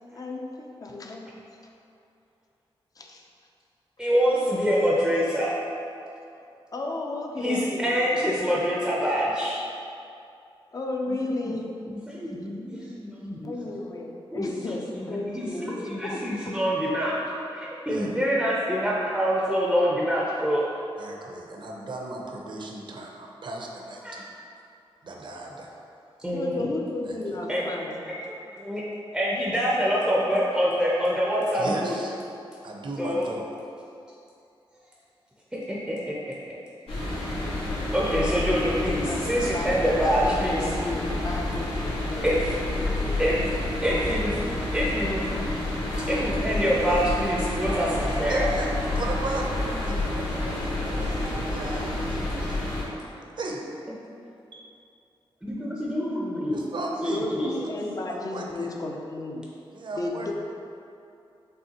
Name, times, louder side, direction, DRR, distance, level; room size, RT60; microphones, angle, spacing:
voice 1, 0.1-1.3 3.0-3.3 6.7-8.4 10.7-11.7 13.4-16.5 26.3-28.0 38.0-42.3 57.0-59.5 59.9-60.3, left 2 dB, 40° left, 1 dB, 0.5 m, -34 dB
voice 2, 4.0-5.6 7.4-9.6 11.4-11.5 11.9-13.5 14.3-14.5 14.9-17.2 17.5-20.7 24.0-24.2 26.2-26.7 27.5-27.6 28.6-28.8 29.1-31.9 33.0-33.3 35.5-36.3 37.9-40.7 42.2-42.5 42.8-44.4 44.7-45.2 46.1-48.5 55.4-56.6 57.0-57.5, equal, 5° right, -5 dB, 0.5 m, -26 dB
voice 3, 21.0-24.2 25.0-25.7 27.0-27.2 31.5-32.2 32.6-33.4 48.3-53.0 53.4-53.6 54.5-54.6 56.5-57.2 58.1-58.7 59.7-60.3, right 2 dB, 55° right, 0 dB, 0.6 m, -36 dB
sound 1, 36.9-52.8, left 1 dB, 85° left, 1.3 m, -29 dB
5.5 x 3.2 x 2.9 m, 2.6 s
wide cardioid pair, 90°, 9 cm